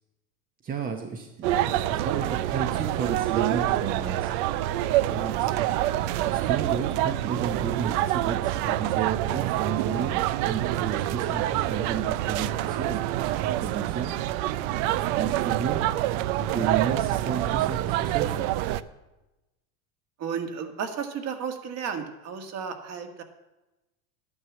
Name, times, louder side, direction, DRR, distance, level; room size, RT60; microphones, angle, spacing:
voice 1, 0.6-4.3 5.1-5.6 6.2-10.2 10.4-14.1 15.1-18.5, right 6 dB, 20° right, 4 dB, 0.9 m, -33 dB
sound 1, 1.4-18.8, right 14 dB, 55° right, 0.6 m, -26 dB
voice 2, 20.2-23.2, right 7 dB, 35° right, 6 dB, 1.8 m, -33 dB
11.5 x 9.8 x 7.2 m, 1.0 s
supercardioid pair, 140°, 42 cm